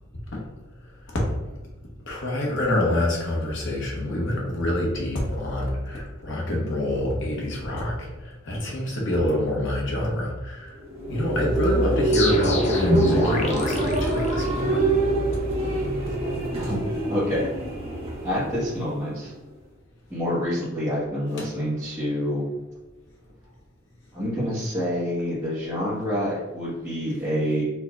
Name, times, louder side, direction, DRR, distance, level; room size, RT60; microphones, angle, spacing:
voice 1, 2.1-10.8 11.1-14.8 21.3-21.5, left 1 dB, 65° left, -2 dB, 1.0 m, -26 dB
sound 1, 10.8-19.4, right 2 dB, 30° right, 1.3 m, -25 dB
sound 2, 12.1-14.9, left 2 dB, 35° left, 0.6 m, -27 dB
voice 2, 16.5-17.5 18.2-19.3 20.1-22.4 24.1-27.6, equal, 15° right, -13 dB, 1.3 m, -27 dB
4.5 x 2.8 x 2.4 m, 1.1 s
head